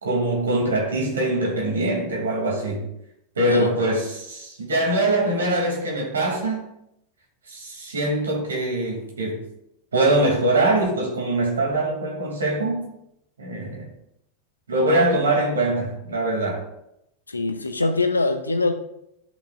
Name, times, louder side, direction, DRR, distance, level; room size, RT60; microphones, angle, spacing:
voice 1, 0.0-2.8 3.3-6.6 7.5-9.4 9.9-12.9 13.4-13.9 14.7-16.7, right 1 dB, 70° right, 0 dB, 2.6 m, -23 dB
voice 2, 3.5-3.8 17.3-18.7, left 3 dB, 80° left, 8 dB, 0.7 m, -23 dB
12.5 x 5.7 x 2.5 m, 0.79 s
figure-of-eight pair, 90°, 0 cm